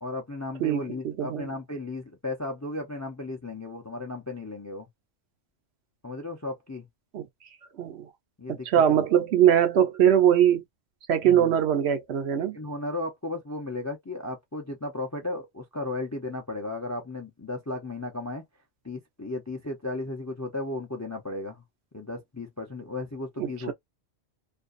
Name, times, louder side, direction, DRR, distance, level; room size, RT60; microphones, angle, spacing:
voice 1, 0.0-4.9 6.0-6.9 8.4-9.1 11.2-11.6 12.4-18.4 18.8-21.6 21.9-23.7, left 2 dB, 25° left, 0.4 m, -35 dB
voice 2, 0.6-1.5 7.1-7.3 7.8-8.1 8.5-10.6 11.1-12.6 23.4-23.7, right 10 dB, 65° right, 0.8 m, -22 dB
2.5 x 2.2 x 2.4 m
omnidirectional pair, 1.2 m